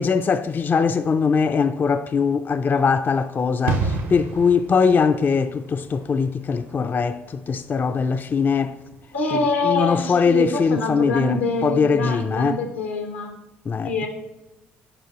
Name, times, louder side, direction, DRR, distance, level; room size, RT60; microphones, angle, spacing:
voice 1, 0.0-8.7 9.3-12.6 13.7-13.9, left 5 dB, 30° left, 0.3 m, -21 dB
sound 1, 3.7-10.2 10.4-10.6, right 4 dB, 70° right, 0.8 m, -32 dB
voice 2, 9.1-13.4 13.8-14.1, left 2 dB, 85° left, 0.8 m, -25 dB
6.8 x 5.3 x 2.9 m
hypercardioid pair, 50°, 6 cm